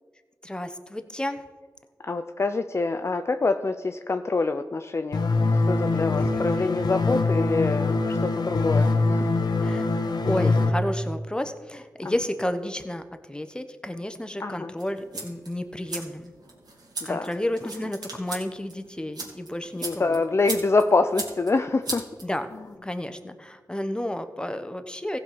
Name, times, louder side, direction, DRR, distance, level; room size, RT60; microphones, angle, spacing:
voice 1, 0.4-1.4 6.1-6.6 9.6-9.9 10.2-16.3 17.0-20.2 22.2-22.5 22.8-25.2, left 1 dB, 15° left, 9 dB, 1.0 m, -31 dB
voice 2, 2.0-9.3 12.0-12.1 14.4-14.7 17.1-17.3 19.8-22.0, left 3 dB, 40° left, 8 dB, 0.5 m, -26 dB
sound 1, 5.1-10.7, left 3 dB, 80° left, 1.0 m, -23 dB
sound 2, 14.8-22.7, right 3 dB, 75° right, 2.9 m, -38 dB
15.5 x 5.3 x 5.9 m, 1.4 s
cardioid pair, 50°, 7 cm